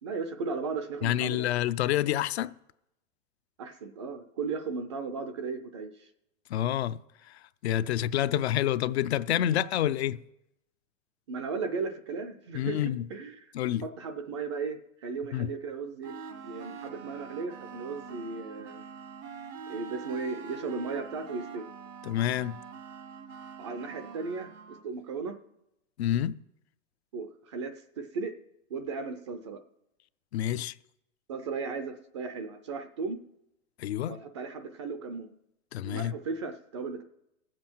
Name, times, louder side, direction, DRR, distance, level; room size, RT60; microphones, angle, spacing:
voice 1, 0.0-1.5 3.6-6.1 11.3-13.5 13.8-16.2 16.4-18.8 19.7-21.7 23.6-25.3 27.1-28.3 28.7-29.6 31.3-33.2 34.1-35.3 35.8-37.0, right 4 dB, 25° right, 0.4 m, -36 dB
voice 2, 1.0-2.5 6.5-7.0 7.3-10.2 12.5-13.0 13.5-13.8 15.3-15.5 22.0-22.5 26.0-26.4 30.3-30.8 33.8-34.2 35.7-36.1, left 12 dB, 55° left, 0.5 m, -28 dB
sound 1, 16.0-24.9, right 5 dB, 75° right, 1.3 m, -44 dB
19.0 x 7.6 x 4.5 m
hypercardioid pair, 160°, 39 cm